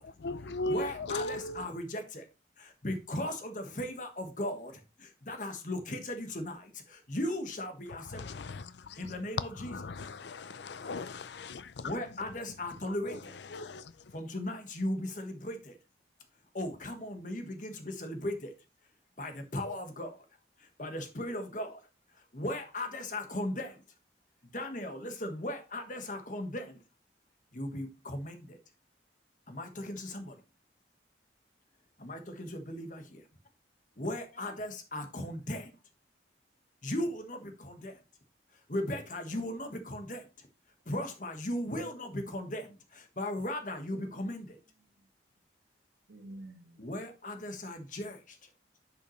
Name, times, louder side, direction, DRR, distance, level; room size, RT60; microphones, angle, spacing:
voice 1, 0.0-1.6 8.0-9.1 9.5-11.9 12.8-14.1, left 2 dB, 70° left, 0.5 m, -39 dB
voice 2, 0.6-2.2 2.6-8.4 9.0-10.1 11.8-13.3 14.1-15.8 16.5-18.5 19.2-20.3 20.6-21.8 22.1-23.8 24.5-26.8 27.5-28.6 29.5-30.4 32.0-33.0 34.0-35.7 36.8-38.0 38.5-40.5 40.8-44.6 46.8-48.5, left 1 dB, 45° left, 1.4 m, -37 dB
voice 3, 41.8-42.6 43.9-45.1 46.1-46.9, right 1 dB, 70° right, 1.5 m, -52 dB
10.5 x 5.7 x 3.1 m
head